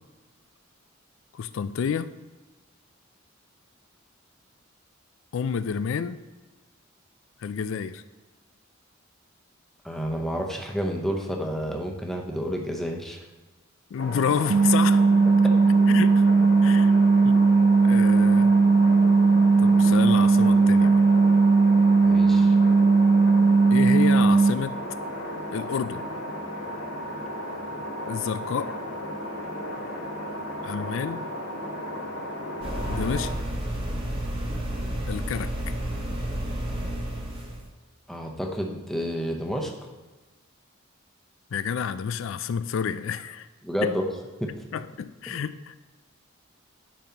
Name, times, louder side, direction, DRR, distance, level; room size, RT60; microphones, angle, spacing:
voice 1, 1.3-2.1 5.3-6.2 7.4-8.0 13.9-15.0 15.9-16.2 16.6-16.9 17.2-17.4 17.8-18.5 19.6-21.0 23.7-24.8 25.5-26.0 28.1-28.8 30.6-31.3 32.9-33.3 35.1-35.5 41.5-43.5 43.8-43.9 44.7-45.8, left 7 dB, 65° left, 14 dB, 0.3 m, -29 dB
voice 2, 9.8-13.2 15.4-15.5 22.0-22.5 38.1-39.7 43.6-44.0 44.4-44.5, equal, ahead, 1 dB, 0.7 m, -30 dB
sound 1, 14.0-33.3, equal, 80° left, 1.9 m, -34 dB
sound 2, 14.5-24.5, right 4 dB, 90° right, 0.5 m, -18 dB
sound 3, 32.6-37.7, right 1 dB, 25° right, 1.2 m, -31 dB
10.5 x 5.3 x 2.9 m, 1.2 s
head